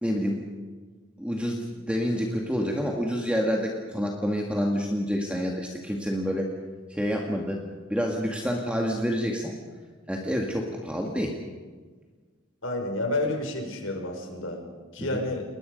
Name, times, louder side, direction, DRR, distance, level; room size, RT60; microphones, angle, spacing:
voice 1, 0.0-0.5 1.2-6.5 6.9-7.6 7.9-9.6 10.1-11.3 15.0-15.2, equal, 5° right, 0 dB, 2.0 m, -28 dB
voice 2, 12.6-14.6 14.9-15.4, left 2 dB, 70° left, 3 dB, 5.3 m, -30 dB
29.5 x 21.5 x 5.4 m, 1.5 s
head